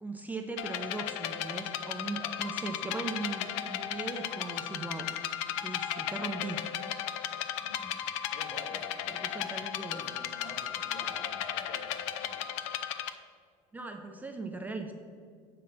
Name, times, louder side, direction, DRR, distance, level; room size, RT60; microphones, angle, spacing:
voice 1, 0.0-5.1 5.6-6.6 9.1-10.1 13.7-14.9, right 3 dB, 10° right, 4 dB, 0.4 m, -39 dB
sound 1, 0.6-13.1, left 10 dB, 85° left, 0.5 m, -35 dB
voice 2, 7.6-8.0 8.3-12.6, left 1 dB, 60° left, 0 dB, 2.0 m, -49 dB
7.4 x 5.5 x 5.8 m, 2.2 s
cardioid pair, 145°, 15 cm